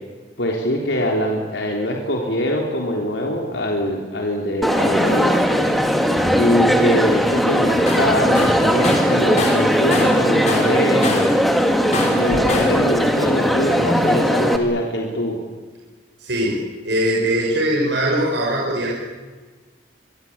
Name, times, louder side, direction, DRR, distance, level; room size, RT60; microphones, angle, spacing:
voice 1, 0.4-5.4 6.3-11.3 12.1-15.4, left 1 dB, 85° left, 0 dB, 3.9 m, -23 dB
Crowd, 4.6-14.6, equal, ahead, 2.3 m, -18 dB
Tools, 7.9-8.1 8.3-10.2 10.5-11.4 11.9-12.8, left 2 dB, 40° left, 5.5 m, -25 dB
voice 2, 16.2-16.6 16.8-18.9, right 1 dB, 75° right, -3 dB, 6.1 m, -21 dB
26.0 x 22.5 x 8.9 m, 1.4 s
head